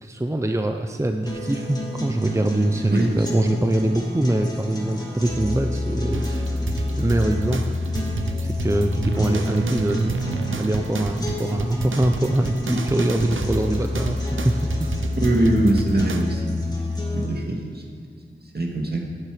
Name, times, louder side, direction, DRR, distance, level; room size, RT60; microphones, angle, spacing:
voice 1, 0.0-6.3 7.0-7.8 8.4-10.2 10.6-14.2 14.4-14.6, right 1 dB, 15° right, 5 dB, 0.6 m, -23 dB
sound 1, 1.3-17.3, left 2 dB, 20° left, 2.7 m, -28 dB
sound 2, 6.1-16.2, right 4 dB, 85° right, 0.7 m, -31 dB
voice 2, 15.2-16.6 17.1-19.0, right 1 dB, 55° right, 0 dB, 2.0 m, -23 dB
13.5 x 9.7 x 5.1 m, 2.1 s
wide cardioid pair, 60°, 20 cm